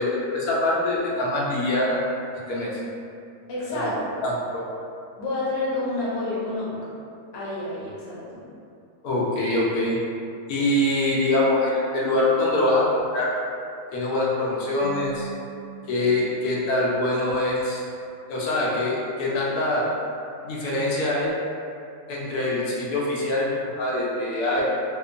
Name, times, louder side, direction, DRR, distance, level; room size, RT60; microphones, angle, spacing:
voice 1, 0.0-2.0 2.5-2.8 3.7-3.9 4.2-4.6 9.0-10.0 10.5-13.3 13.9-15.3 15.9-17.8 18.3-19.9 20.4-21.3 22.1-24.6, left 1 dB, 85° left, -5 dB, 1.1 m, -24 dB
voice 2, 3.5-4.2 5.2-6.8 7.3-8.4, left 2 dB, 55° left, -8 dB, 0.8 m, -29 dB
Marimba xylophone / Wood, 14.8-17.5, right 7 dB, 75° right, 0.5 m, -43 dB
2.9 x 2.1 x 2.5 m, 2.6 s
omnidirectional pair, 1.6 m